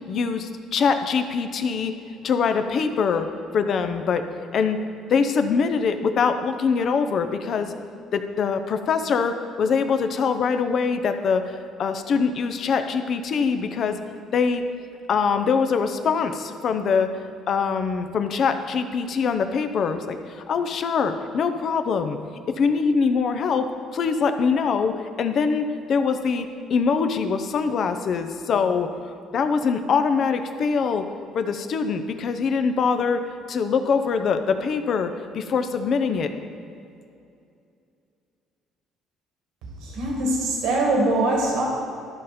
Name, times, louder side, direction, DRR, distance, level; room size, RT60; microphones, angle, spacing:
voice 1, 0.1-1.9 2.2-3.3 3.5-4.2 4.5-4.8 5.1-7.7 8.1-14.0 14.3-14.6 15.1-17.1 17.5-22.2 22.5-28.9 29.3-31.0 31.3-33.2 33.5-36.3, left 5 dB, 55° left, 8 dB, 0.7 m, -23 dB
voice 2, 39.8-41.6, right 2 dB, 85° right, -1 dB, 1.9 m, -22 dB
13.0 x 5.1 x 4.2 m, 2.6 s
cardioid pair, 90°, 0 cm